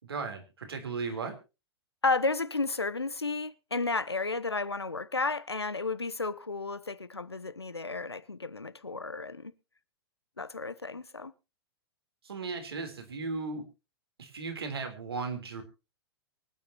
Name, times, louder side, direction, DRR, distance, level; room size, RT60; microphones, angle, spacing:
voice 1, 0.0-1.3 12.2-13.6 14.2-15.6, right 4 dB, 75° right, 3.5 m, -36 dB
voice 2, 2.0-9.5 10.4-11.3, left 3 dB, 90° left, 0.9 m, -32 dB
24.5 x 9.6 x 2.9 m
figure-of-eight pair, 100°, 13 cm